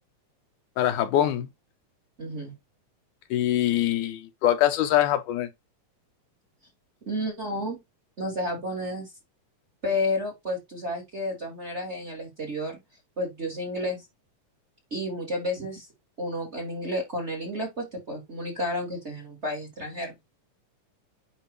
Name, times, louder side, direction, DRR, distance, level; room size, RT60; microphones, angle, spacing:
voice 1, 0.8-1.5 3.3-5.5, left 12 dB, 80° left, 2.0 m, -23 dB
voice 2, 2.2-2.5 7.1-7.8 8.2-9.1 9.8-12.8 13.2-14.1 14.9-15.9 16.2-20.1, left 1 dB, 25° right, 1.8 m, -31 dB
9.8 x 3.3 x 3.1 m
omnidirectional pair, 3.8 m